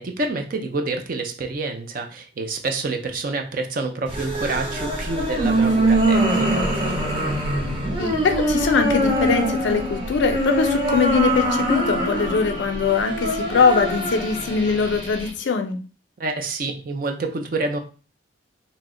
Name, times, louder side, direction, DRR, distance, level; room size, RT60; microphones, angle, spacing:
voice 1, 0.0-6.7 16.2-17.8, right 3 dB, 45° right, 5 dB, 0.4 m, -28 dB
sound 1, 4.1-15.3, right 1 dB, 30° right, 0.9 m, -23 dB
voice 2, 8.0-15.8, left 5 dB, 70° left, 7 dB, 0.4 m, -22 dB
2.8 x 2.0 x 3.6 m, 0.36 s
head